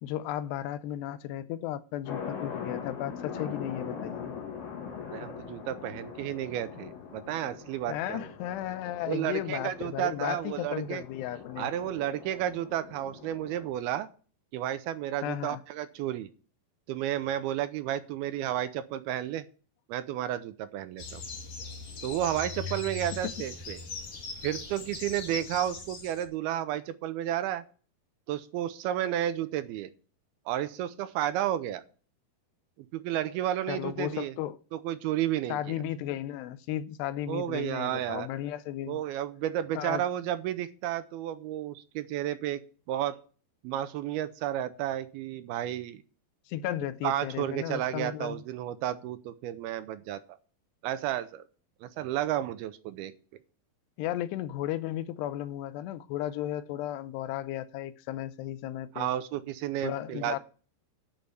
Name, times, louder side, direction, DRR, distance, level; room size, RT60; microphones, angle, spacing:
voice 1, 0.0-4.4 7.9-11.7 15.2-15.6 33.7-34.6 35.5-39.0 39.7-40.1 46.5-48.4 54.0-59.1 59.8-60.4, left 12 dB, 90° left, 2.8 m, -34 dB
sound 1, 2.1-13.7, left 7 dB, 70° left, 4.2 m, -42 dB
voice 2, 5.1-8.3 9.1-11.0 11.6-14.1 14.5-16.3 16.9-19.5 19.9-21.2 22.0-23.8 24.4-27.6 28.3-29.9 30.5-31.8 32.9-34.3 34.7-35.8 37.3-38.3 38.9-42.6 42.9-43.2 43.6-46.0 47.0-50.4 50.8-51.4 51.8-53.1 59.0-60.4, right 12 dB, 80° right, 2.5 m, -32 dB
sound 2, 21.0-26.2, left 4 dB, 50° left, 3.2 m, -40 dB
10.5 x 5.6 x 7.9 m
omnidirectional pair, 4.7 m